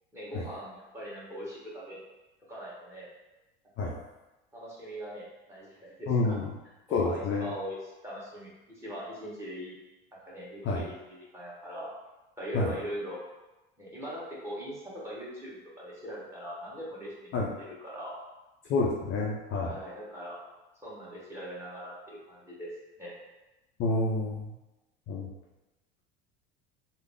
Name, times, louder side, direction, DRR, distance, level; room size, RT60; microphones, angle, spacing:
voice 1, 0.1-2.0 2.5-3.1 3.8-3.9 4.5-6.4 6.9-9.8 10.2-11.9 12.4-13.2 13.8-18.2 19.6-20.4 20.8-22.7 23.0-23.1, equal, 10° right, -7 dB, 1.4 m, -41 dB
voice 2, 6.1-6.4 6.9-7.5 10.6-10.8 12.5-12.7 17.3-17.5 18.7-19.7 23.8-24.5 25.1-25.3, left 3 dB, 40° left, -3 dB, 0.6 m, -28 dB
3.7 x 2.1 x 3.5 m, 1.0 s
supercardioid pair, 105°, 29 cm